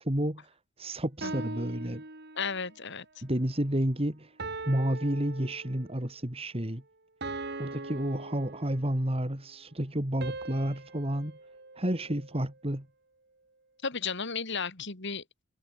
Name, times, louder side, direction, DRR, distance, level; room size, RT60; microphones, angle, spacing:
voice 1, 0.0-2.0 3.2-4.3 4.7-6.8 7.6-11.4 11.8-12.9, right 1 dB, 30° right, 2.8 m, -31 dB
sound 1, 1.2-2.8 4.4-6.0 7.2-9.1 10.2-12.5, right 2 dB, 50° right, 4.6 m, -41 dB
voice 2, 2.4-3.0 13.8-15.4, left 5 dB, 55° left, 3.0 m, -34 dB
head